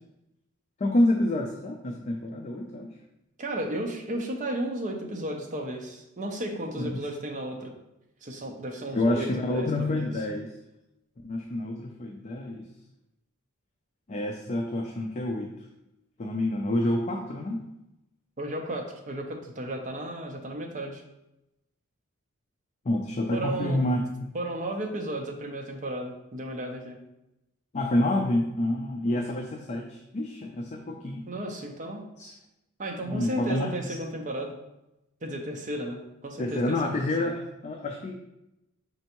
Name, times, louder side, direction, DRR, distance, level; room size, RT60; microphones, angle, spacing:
voice 1, 0.8-2.9 6.8-7.0 8.9-10.5 11.2-12.7 14.1-15.5 16.2-17.6 22.8-24.3 27.7-31.3 32.2-32.3 33.0-33.7 36.4-38.2, left 1 dB, 30° left, 1 dB, 0.4 m, -28 dB
voice 2, 3.4-7.7 8.2-10.1 18.4-21.0 23.3-23.8 24.3-27.0 29.1-29.3 31.3-32.0 32.8-34.6 35.2-36.9 37.2-37.3, right 1 dB, 35° right, 2 dB, 0.6 m, -34 dB
5.2 x 3.3 x 2.9 m, 0.91 s
head